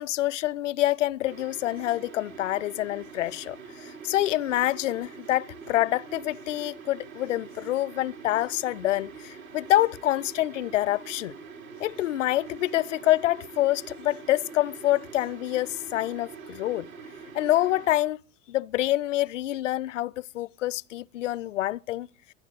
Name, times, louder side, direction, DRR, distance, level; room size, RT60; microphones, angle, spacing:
voice 1, 0.0-11.3 11.8-16.9 17.3-18.2 18.5-22.1, left 15 dB, 60° left, 0.6 m, -26 dB
sound 1, 1.2-17.9, right 5 dB, 75° right, 4.2 m, -44 dB
23.5 x 10.0 x 4.7 m
figure-of-eight pair, 85°, 42 cm